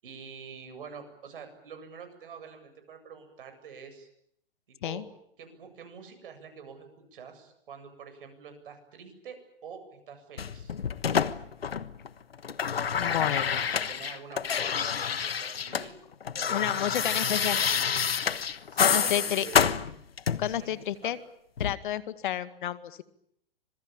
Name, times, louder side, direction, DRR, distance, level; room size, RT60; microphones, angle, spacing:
voice 1, 0.0-4.1 4.7-5.0 5.4-10.8 13.4-14.6 15.0-15.1 15.4-15.9 16.4-17.0 17.3-17.9 18.7-19.7 20.6-20.8 21.0-21.1, right 6 dB, 65° right, 7 dB, 7.8 m, -46 dB
sound 1, 10.4-12.1 12.3-20.6 21.6-21.7, left 7 dB, 90° left, 1.3 m, -28 dB
voice 2, 13.0-13.6 16.5-17.6 18.8-19.5 20.4-21.2 21.6-23.0, left 11 dB, 60° left, 13 dB, 2.0 m, -30 dB
26.5 x 22.0 x 8.9 m, 0.73 s
hypercardioid pair, 130°, 29 cm